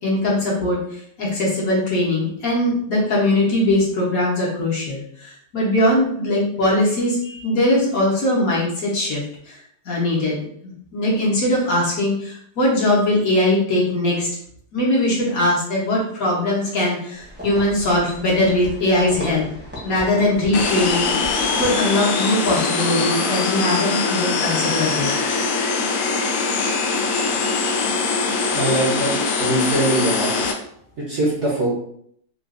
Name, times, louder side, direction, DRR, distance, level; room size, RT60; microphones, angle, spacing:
voice 1, 0.0-9.2 9.5-9.6 9.8-10.4 10.6-14.3 14.7-19.4 19.8-25.7, left 1 dB, 55° left, -5 dB, 1.3 m, -21 dB
sound 1, 17.2-22.1, equal, 10° right, 0.7 m, -36 dB
sound 2, 20.5-30.5, left 4 dB, 80° left, 0.7 m, -22 dB
voice 2, 28.5-30.3 31.0-31.7, right 1 dB, 50° right, -6 dB, 0.9 m, -22 dB
3.9 x 2.4 x 2.4 m, 0.66 s
omnidirectional pair, 1.9 m